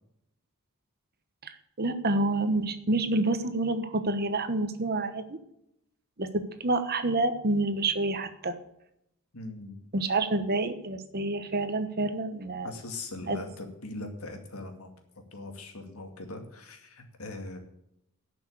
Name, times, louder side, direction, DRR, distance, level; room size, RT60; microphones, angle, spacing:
voice 1, 1.4-5.4 6.2-8.6 9.9-12.7 13.3-13.4, right 2 dB, 45° right, 10 dB, 1.1 m, -28 dB
voice 2, 9.3-9.8 12.6-14.9 15.3-17.6, left 2 dB, 75° left, 4 dB, 2.3 m, -40 dB
11.5 x 6.2 x 8.5 m, 0.79 s
head